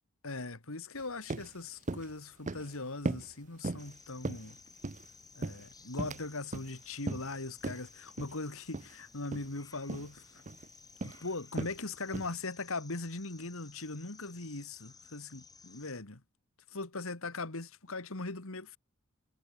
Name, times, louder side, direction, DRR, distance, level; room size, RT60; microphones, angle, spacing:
voice 1, 0.2-4.6 5.3-10.4 11.0-16.2 16.7-18.8, left 3 dB, 65° left, 2.3 m, -40 dB
sound 1, 1.0-1.1 1.3-1.5 1.9-2.1 2.5-2.7 3.1-3.3 3.6-3.9 4.2-5.1 5.4-6.3 6.5-6.7 7.1-7.3 7.6-7.8 8.2-8.4 8.7-8.9 9.3-9.5 9.9-10.1 10.5-10.7 11.0-11.2 11.6-11.8 12.1-12.4, right 2 dB, 35° right, 0.7 m, -37 dB
sound 2, 3.8-15.9, left 5 dB, 15° left, 4.8 m, -57 dB
head